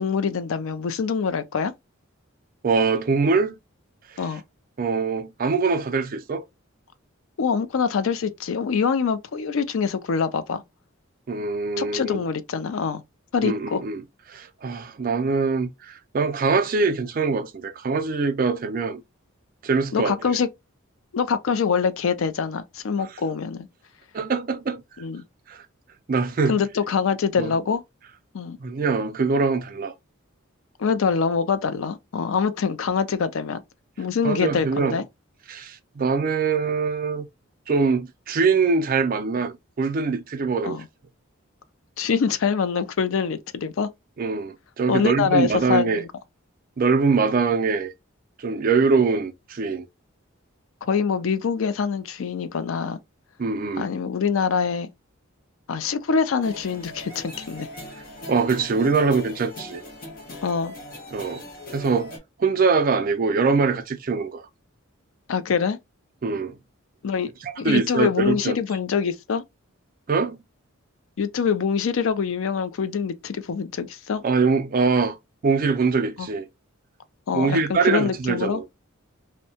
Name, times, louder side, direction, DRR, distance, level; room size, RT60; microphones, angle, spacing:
voice 1, 0.0-1.7 4.2-4.4 7.4-10.6 11.8-13.0 13.3-13.8 19.9-20.5 21.1-23.7 25.0-25.2 26.5-27.8 28.3-28.6 30.8-33.6 34.0-35.0 40.6-40.9 42.0-43.9 44.9-46.1 50.8-53.0 53.8-54.9 55.7-57.7 60.4-60.7 61.6-61.7 65.3-65.8 67.0-67.3 67.6-69.4 71.2-74.2 76.2-76.3 77.3-78.6, left 6 dB, 70° left, 0.4 m, -24 dB
voice 2, 2.6-3.6 4.8-6.4 11.3-12.2 13.4-14.0 14.3-19.0 19.6-20.2 24.1-24.8 25.5-25.6 26.1-26.6 27.4-27.5 28.6-29.9 34.2-35.0 35.5-37.3 37.7-40.8 44.2-46.0 46.8-47.9 48.4-49.9 53.4-53.9 58.3-59.8 61.1-61.4 61.7-62.1 62.4-64.5 66.2-66.6 67.4-68.6 70.1-70.4 74.2-75.2 75.4-76.4 77.3-78.6, right 4 dB, 40° right, 0.4 m, -23 dB
sound 1, 56.4-62.2, left 1 dB, 40° left, 0.8 m, -40 dB
2.7 x 2.1 x 2.7 m
head